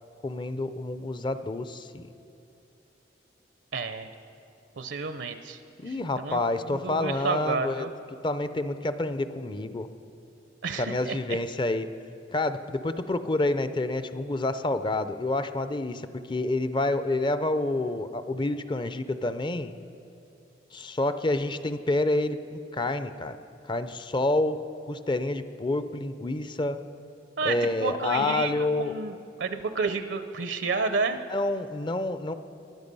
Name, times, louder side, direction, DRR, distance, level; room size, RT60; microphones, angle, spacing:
voice 1, 0.2-2.1 5.8-7.9 8.2-9.9 10.8-11.9 12.3-19.7 20.7-23.4 23.6-24.6 24.9-26.8 27.4-28.9 31.3-32.3, left 2 dB, 25° left, 11 dB, 0.5 m, -28 dB
voice 2, 3.7-4.1 4.8-5.6 5.9-7.9 10.6-11.4 27.4-31.2, right 4 dB, 70° right, 9 dB, 0.6 m, -31 dB
21.0 x 11.5 x 5.4 m, 2.7 s
head